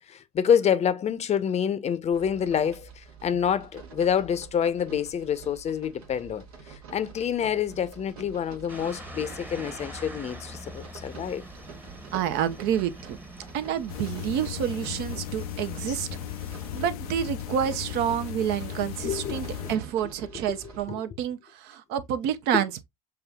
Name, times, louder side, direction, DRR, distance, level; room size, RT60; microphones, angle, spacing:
voice 1, 0.1-11.4 18.8-19.5 20.3-20.6 20.9-21.0 22.5-22.6, left 8 dB, 35° left, 0.6 m, -27 dB
sound 1, 2.1-20.9, right 6 dB, 85° right, 1.1 m, -46 dB
sound 2, 8.7-16.8, equal, 10° right, 0.9 m, -44 dB
voice 2, 12.1-13.2 13.5-16.1 16.7-22.9, right 9 dB, 65° right, 0.6 m, -28 dB
sound 3, 13.9-19.8, left 13 dB, 85° left, 0.4 m, -36 dB
6.8 x 2.3 x 2.2 m
hypercardioid pair, 75°, 19 cm